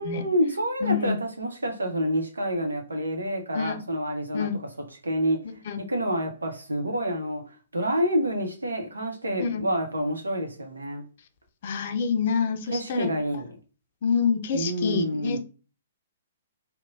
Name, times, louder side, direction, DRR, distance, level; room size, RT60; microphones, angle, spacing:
voice 1, 0.0-4.5 5.0-5.4 5.8-7.4 7.7-11.0 12.7-13.6 14.5-15.4, equal, 80° right, 0.7 m, -28 dB
voice 2, 0.8-1.2 3.5-3.8 4.3-4.6 5.4-5.8 9.4-9.6 11.6-13.2 14.0-15.4, left 6 dB, 50° left, 0.5 m, -27 dB
3.0 x 2.1 x 2.4 m
figure-of-eight pair, 120°, 0 cm